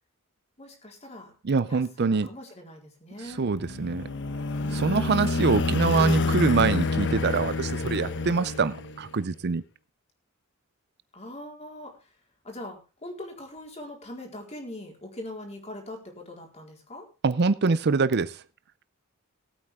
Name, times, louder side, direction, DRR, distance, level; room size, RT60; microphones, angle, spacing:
voice 1, 0.6-1.3 1.6-3.5 11.1-12.2 12.4-17.1, left 1 dB, 30° left, 4.3 m, -42 dB
voice 2, 1.4-2.3 3.4-4.0 4.7-9.6 17.2-18.4, right 4 dB, 50° right, 0.5 m, -25 dB
sound 1, 3.4-9.2, left 3 dB, 60° left, 1.1 m, -28 dB
19.0 x 8.9 x 3.6 m
head